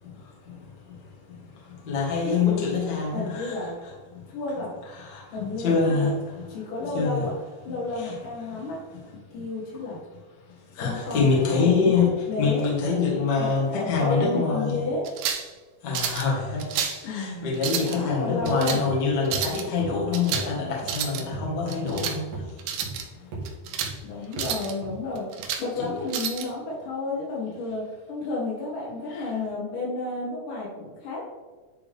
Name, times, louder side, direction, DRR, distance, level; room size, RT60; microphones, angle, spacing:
voice 1, 0.0-3.6 4.1-4.3 4.9-6.5 6.8-7.3 7.9-8.1 8.5-8.6 9.3-9.5 10.7-14.8 15.8-22.6 23.0-23.3 24.2-24.3 25.8-25.9 29.1-29.3, left 4 dB, 60° left, -4 dB, 1.1 m, -26 dB
voice 2, 2.2-2.6 3.1-3.7 4.3-4.7 5.3-6.1 6.5-7.3 7.6-8.8 9.3-10.0 10.8-11.9 12.3-12.7 13.4-15.1 17.0-18.8 24.0-27.8 28.1-31.2, left 2 dB, 80° left, -5 dB, 4.2 m, -31 dB
sound 1, 15.0-15.5 15.9-16.3 16.6-17.0 17.5-18.0 18.5-18.8 19.3-19.6 20.1-20.5 20.8-21.2 21.7-22.2 22.6-23.0 23.5-23.9 24.3-24.7 25.2-25.7 26.1-26.5, right 8 dB, 80° right, 2.5 m, -30 dB
sound 2, 18.4-18.6 18.8-19.0 19.3-19.4 19.8-19.9 20.3-20.5 20.8-21.0 21.3-21.5 21.8-22.0 22.3-22.4 22.8-23.0 23.3-23.4 23.8-24.0 24.4-24.5 24.8-25.0 25.4-25.5, right 3 dB, 60° right, 2.1 m, -36 dB
10.5 x 3.6 x 3.5 m, 1.3 s
omnidirectional pair, 4.9 m